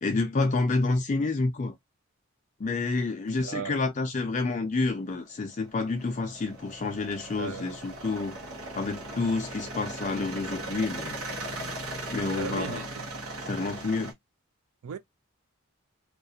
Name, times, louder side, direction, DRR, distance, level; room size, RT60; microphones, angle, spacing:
voice 1, 0.0-1.7 2.6-8.4 8.7-11.2 12.1-12.8 13.5-14.1, left 3 dB, 35° left, 0.4 m, -29 dB
voice 2, 3.4-3.8 7.4-7.8 12.2-12.8 14.8-15.0, right 6 dB, 70° right, 0.4 m, -36 dB
sound 1, 5.1-14.1, right 2 dB, 85° right, 0.9 m, -38 dB
2.4 x 2.1 x 2.7 m
head